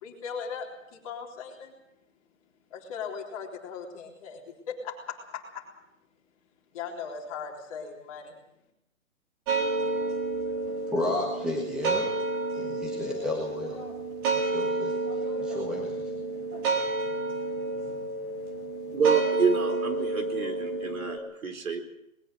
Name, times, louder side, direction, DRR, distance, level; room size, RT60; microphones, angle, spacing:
voice 1, 0.0-1.7 2.7-5.7 6.7-8.4, left 6 dB, 25° left, -1 dB, 3.7 m, -38 dB
sound 1, 9.5-21.2, right 2 dB, 15° right, 1.6 m, -30 dB
voice 2, 10.7-12.1 12.5-13.8 14.3-14.9 15.4-16.1, left 2 dB, ahead, -3 dB, 1.5 m, -33 dB
voice 3, 18.9-21.8, right 5 dB, 75° right, 6 dB, 4.4 m, -28 dB
20.5 x 17.5 x 7.7 m, 0.83 s
hypercardioid pair, 170°, 41 cm